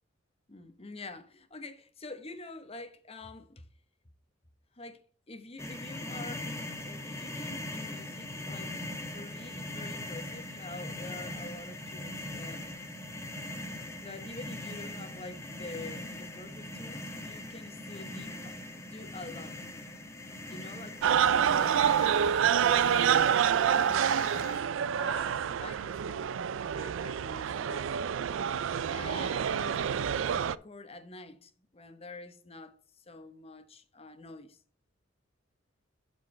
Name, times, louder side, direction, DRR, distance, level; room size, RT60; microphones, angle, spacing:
voice 1, 0.5-3.7 4.7-5.0 5.3-6.5 6.8-8.8 9.1-12.7 14.0-19.7 20.5-23.4 23.6-24.5 25.0-26.3 26.7-28.2 28.5-28.6 28.9-34.6, left 3 dB, 30° left, 0.9 m, -47 dB
sound 1, 5.6-24.6, left 1 dB, 15° left, 1.1 m, -41 dB
sound 2, 21.0-30.6, right 8 dB, 80° right, 0.4 m, -27 dB
12.0 x 4.6 x 3.2 m
head